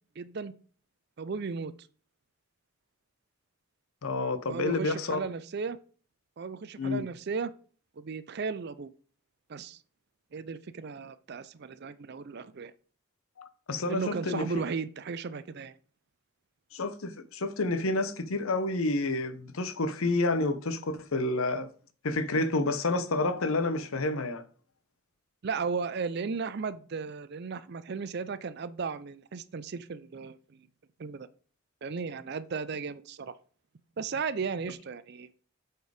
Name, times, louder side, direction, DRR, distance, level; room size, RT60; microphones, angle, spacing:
voice 1, 0.2-0.5 1.2-1.7 4.5-5.8 6.4-7.5 8.0-8.9 9.5-9.8 10.3-12.7 13.9-15.7 25.4-30.6 31.0-31.3 31.8-33.3 34.0-35.3, right 5 dB, 50° right, 0.5 m, -35 dB
voice 2, 4.0-5.2 6.8-7.0 13.4-14.5 16.7-21.7 22.0-24.4, left 2 dB, 80° left, 0.8 m, -29 dB
8.2 x 4.5 x 4.9 m
head